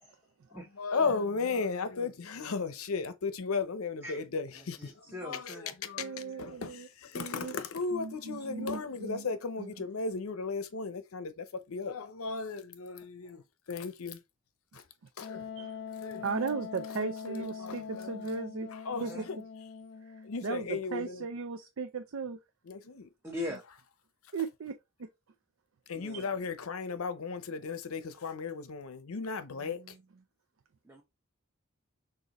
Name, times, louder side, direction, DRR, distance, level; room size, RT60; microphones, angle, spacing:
voice 1, 0.8-4.9 5.2-13.4 13.7-14.2 15.2-15.5 16.0-16.2 17.3-18.1 18.9-19.4 20.2-21.2 22.7-23.1 25.9-29.8, left 4 dB, 85° left, 0.6 m, -35 dB
voice 2, 4.6-5.7 16.1-16.2 19.0-19.3 23.2-23.6 26.0-26.2 30.8-31.0, left 1 dB, 10° right, 0.8 m, -41 dB
voice 3, 6.0-6.9 7.1-7.6 7.9-9.3 9.6-9.7 15.6-15.8 16.2-18.7 19.0-19.3 20.4-22.4 23.5-23.6 24.3-24.7 25.0-25.1 26.1-26.3 29.6-30.0, right 4 dB, 75° right, 0.5 m, -37 dB
Wind instrument woodwind instrument, 15.2-20.7, left 6 dB, 50° left, 0.4 m, -43 dB
6.5 x 2.6 x 2.9 m
head